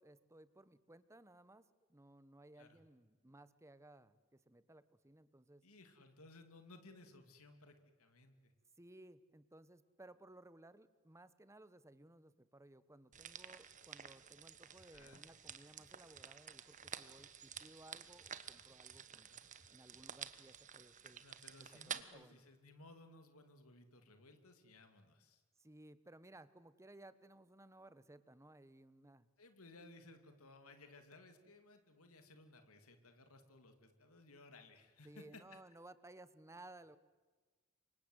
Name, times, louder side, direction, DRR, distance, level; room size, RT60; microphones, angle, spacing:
voice 1, 0.0-5.6 8.8-19.3 19.7-21.2 21.6-22.4 25.6-29.3 35.0-37.0, right 1 dB, 15° right, 14 dB, 1.2 m, -60 dB
voice 2, 5.6-8.5 14.7-15.2 19.1-19.4 21.2-25.4 29.4-35.4, left 2 dB, 80° left, 7 dB, 2.9 m, -60 dB
sound 1, 13.1-22.0, right 8 dB, 35° right, 1.4 m, -51 dB
sound 2, 14.8-14.9 15.3-16.2 16.7-17.7 18.0-20.1, equal, 40° left, 4.6 m, -70 dB
29.0 x 24.5 x 8.2 m, 1.3 s
head